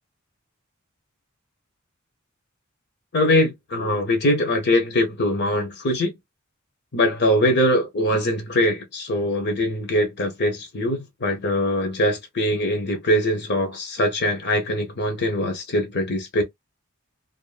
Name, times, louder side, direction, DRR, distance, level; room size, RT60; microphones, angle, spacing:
voice 1, 3.1-6.1 6.9-16.4, left 1 dB, 55° left, 0.8 m, -22 dB
2.5 x 2.5 x 2.4 m
head